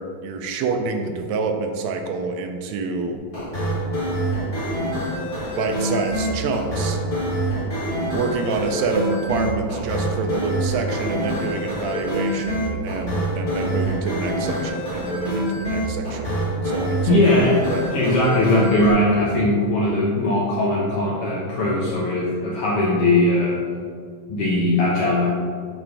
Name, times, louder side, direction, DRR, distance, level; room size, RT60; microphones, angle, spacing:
voice 1, 0.0-3.2 5.6-7.0 8.1-16.4 16.6-17.2 17.7-17.8, right 4 dB, 85° right, 4 dB, 1.5 m, -27 dB
sound 1, 3.3-18.9, right 1 dB, 20° left, 1.5 m, -26 dB
voice 2, 17.1-17.6 17.9-23.6 24.3-25.3, left 1 dB, 80° left, -4 dB, 1.3 m, -19 dB
8.9 x 4.4 x 4.7 m, 2.1 s
omnidirectional pair, 3.9 m